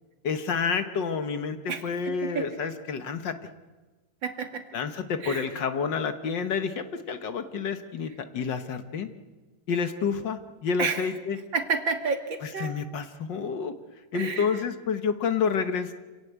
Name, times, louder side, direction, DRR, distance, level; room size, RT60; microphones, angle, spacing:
voice 1, 0.2-3.4 4.7-9.1 9.7-11.4 12.4-13.7 14.1-15.9, left 6 dB, 60° left, 9 dB, 1.8 m, -29 dB
voice 2, 1.7-2.5 4.2-4.7 5.2-5.5 10.8-11.0 11.5-12.7 14.1-14.5, right 5 dB, 65° right, 6 dB, 2.6 m, -30 dB
27.0 x 17.5 x 8.1 m, 1.2 s
omnidirectional pair, 2.3 m